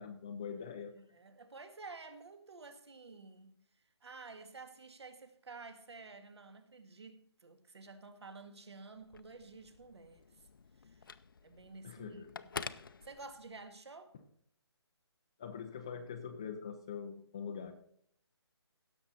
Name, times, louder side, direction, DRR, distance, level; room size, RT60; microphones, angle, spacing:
voice 1, 0.0-0.9 11.8-12.3 15.4-17.7, left 6 dB, 10° left, 0.4 m, -43 dB
voice 2, 0.9-3.5 4.0-10.2 10.8-11.1 11.4-12.7 13.0-14.2, right 3 dB, 70° right, 1.9 m, -51 dB
Telephone, 9.0-13.7, left 6 dB, 50° left, 0.6 m, -48 dB
16.5 x 7.0 x 4.1 m
hypercardioid pair, 170°, 14 cm